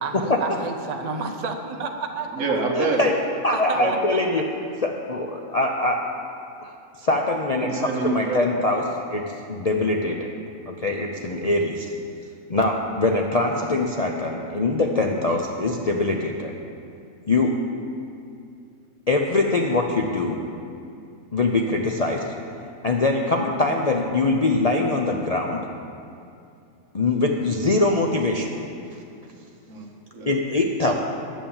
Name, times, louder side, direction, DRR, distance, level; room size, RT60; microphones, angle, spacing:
voice 1, 0.0-2.5 3.5-4.4 30.8-30.9, right 4 dB, 35° right, 4 dB, 0.7 m, -31 dB
voice 2, 2.3-3.1 3.7-4.0 7.6-8.8 29.7-30.4, right 3 dB, 65° right, 1 dB, 1.6 m, -27 dB
voice 3, 3.4-4.4 4.8-6.0 6.6-8.8 9.1-9.2 9.5-10.3 10.7-11.9 12.5-16.5 17.3-17.5 19.1-20.4 21.3-22.2 22.8-25.6 26.9-28.5 30.3-30.9, left 2 dB, 45° left, 0 dB, 0.5 m, -23 dB
10.0 x 7.2 x 7.1 m, 2.5 s
omnidirectional pair, 1.4 m